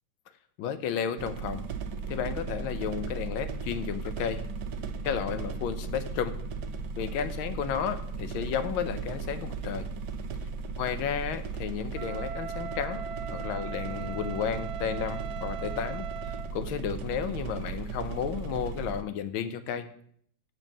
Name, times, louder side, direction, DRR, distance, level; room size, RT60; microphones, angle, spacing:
voice 1, 0.6-1.7 2.1-4.5 5.0-6.4 7.0-9.9 10.8-13.0 13.3-19.9, left 8 dB, 85° left, 11 dB, 1.5 m, -33 dB
sound 1, 1.2-19.0, right 4 dB, 65° right, 1.2 m, -36 dB
Wind instrument woodwind instrument, 11.9-16.6, right 8 dB, 80° right, 1.4 m, -39 dB
8.0 x 4.6 x 7.3 m, 0.63 s
omnidirectional pair, 2.2 m